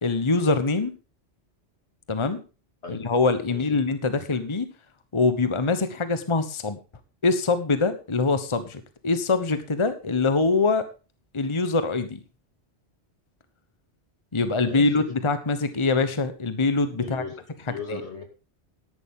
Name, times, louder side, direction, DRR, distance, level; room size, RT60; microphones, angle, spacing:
voice 1, 0.0-0.9 2.1-2.4 2.9-4.7 5.1-6.8 7.2-10.9 11.3-12.2 14.3-17.2 17.9-18.0, left 3 dB, 25° left, 11 dB, 1.1 m, -24 dB
voice 2, 3.5-3.8 14.6-15.0 17.0-18.2, left 4 dB, 75° left, 4 dB, 2.9 m, -37 dB
13.0 x 11.0 x 3.6 m, 0.32 s
omnidirectional pair, 1.2 m